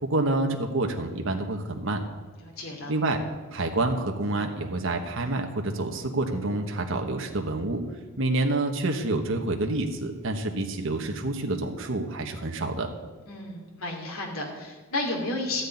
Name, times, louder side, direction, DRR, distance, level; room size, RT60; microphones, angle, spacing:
voice 1, 0.0-2.0 2.9-3.2 3.5-7.8 8.2-12.9, right 2 dB, 65° right, 3 dB, 1.3 m, -28 dB
voice 2, 2.4-2.9 13.3-15.6, left 2 dB, 90° left, 0 dB, 2.6 m, -32 dB
13.5 x 6.4 x 9.4 m, 1.3 s
head